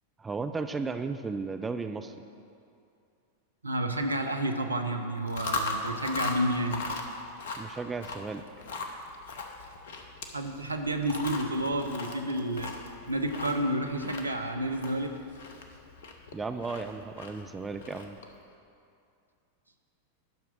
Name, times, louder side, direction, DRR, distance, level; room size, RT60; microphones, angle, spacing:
voice 1, 0.2-2.2 7.6-8.4 16.3-18.2, right 4 dB, 15° right, 8 dB, 0.4 m, -35 dB
voice 2, 3.6-6.8 10.3-12.7 13.1-15.1, right 1 dB, 80° right, 5 dB, 0.7 m, -30 dB
Chewing mastication, 5.2-18.4, left 3 dB, 60° left, 0.9 m, -39 dB
10.5 x 5.9 x 6.2 m, 2.5 s
figure-of-eight pair, 90°, 0 cm